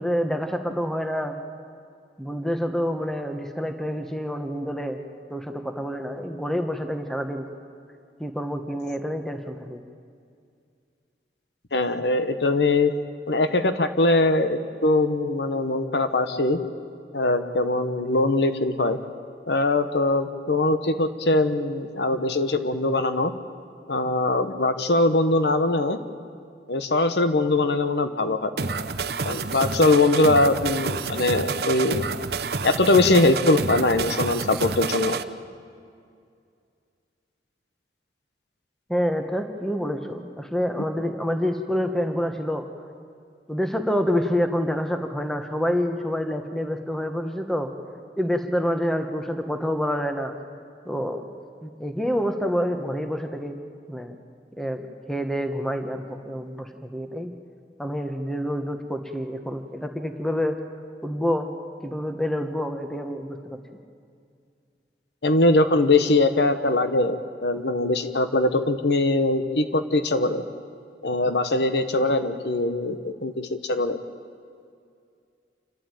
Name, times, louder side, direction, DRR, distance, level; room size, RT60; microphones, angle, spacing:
voice 1, 0.0-1.4 2.2-5.0 5.3-7.5 8.2-9.8 38.9-42.6 43.5-47.7 48.2-50.3 50.8-51.2 51.6-53.6 53.9-54.1 54.6-57.3 57.8-60.6 61.0-61.5 61.8-63.6, equal, ahead, 6 dB, 1.2 m, -27 dB
voice 2, 11.7-12.9 13.3-16.6 17.1-19.0 19.5-23.3 23.9-26.0 26.7-28.5 29.2-32.0 32.6-35.2 65.2-70.4 71.0-74.0, left 2 dB, 80° left, 9 dB, 1.1 m, -22 dB
sound 1, 28.6-35.2, right 4 dB, 65° right, 0.7 m, -29 dB
28.0 x 12.5 x 9.1 m, 2.3 s
head